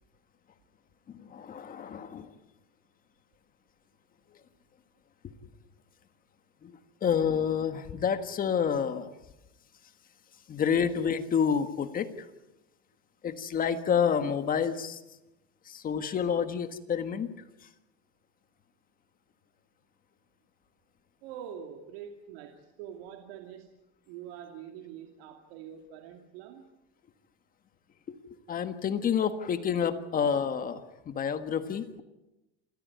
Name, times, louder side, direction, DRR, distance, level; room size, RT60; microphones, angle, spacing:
voice 1, 1.1-2.3 5.2-5.3 6.6-9.1 10.5-12.3 13.2-15.0 15.6-17.3 28.1-32.0, left 7 dB, 25° left, 9 dB, 1.5 m, -29 dB
voice 2, 21.2-23.7 24.1-26.7, right 9 dB, 70° right, 4 dB, 2.6 m, -45 dB
27.5 x 15.0 x 9.4 m, 0.97 s
supercardioid pair, 145°, 31 cm